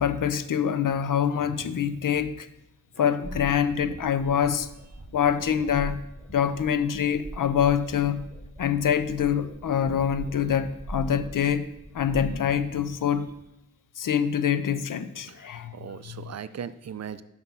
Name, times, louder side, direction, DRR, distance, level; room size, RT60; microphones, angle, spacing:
voice 1, 0.0-2.5 3.0-4.7 5.1-6.0 6.3-8.2 8.6-11.7 11.9-13.3 14.0-15.7 16.1-16.3, left 8 dB, 75° left, 0.6 m, -25 dB
voice 2, 1.4-1.8 15.3-17.2, right 8 dB, 55° right, 0.4 m, -39 dB
sound 1, 3.2-13.4, right 1 dB, 5° right, 2.0 m, -41 dB
5.8 x 5.8 x 5.6 m
wide cardioid pair, 90°, 33 cm